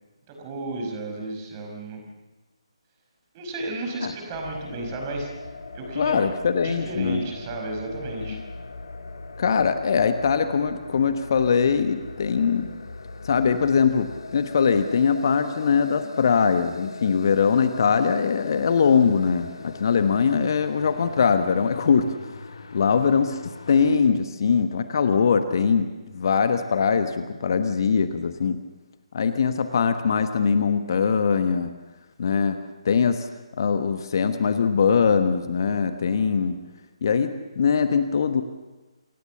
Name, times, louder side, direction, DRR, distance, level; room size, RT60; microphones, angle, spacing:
voice 1, 0.3-2.0 3.3-5.3 5.7-8.4, right 2 dB, 25° right, 2 dB, 5.2 m, -33 dB
sound 1, 4.3-24.0, left 3 dB, 55° left, 1.6 m, -40 dB
voice 2, 6.0-7.2 8.2-8.4 9.4-12.7 13.2-22.1 22.7-28.6 29.1-31.7 32.2-33.3 33.6-36.6 37.0-38.4, left 6 dB, 40° left, 9 dB, 1.2 m, -22 dB
28.0 x 17.0 x 7.1 m, 1.2 s
figure-of-eight pair, 145°, 3 cm